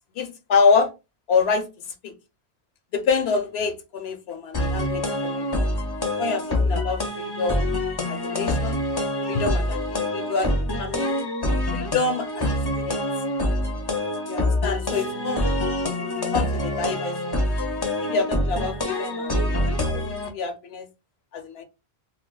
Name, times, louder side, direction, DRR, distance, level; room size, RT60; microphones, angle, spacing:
voice 1, 0.2-0.9 1.3-2.1 2.9-5.7 6.2-7.7 8.1-8.8 9.3-11.2 11.7-13.0 14.3-15.6 16.0-17.5 18.0-19.6 19.9-20.0 20.3-20.9 21.3-21.6, left 5 dB, 75° left, 0.8 m, -26 dB
sound 1, 4.5-20.3, left 1 dB, 30° left, 0.5 m, -25 dB
2.3 x 2.2 x 3.6 m
omnidirectional pair, 1.1 m